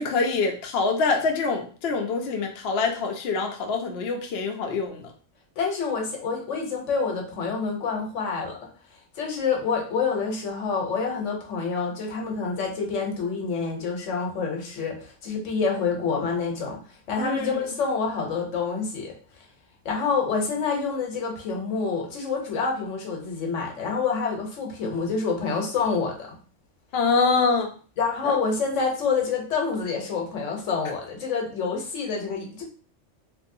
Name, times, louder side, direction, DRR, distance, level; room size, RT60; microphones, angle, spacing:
voice 1, 0.0-5.1 17.2-17.6 26.9-27.7 28.2-28.4, left 4 dB, 65° left, 3 dB, 0.7 m, -25 dB
voice 2, 5.6-8.6 9.1-16.8 17.1-19.1 19.8-26.3 28.0-32.6, left 5 dB, 85° left, 1 dB, 1.2 m, -27 dB
3.1 x 2.7 x 2.6 m, 0.41 s
omnidirectional pair, 1.3 m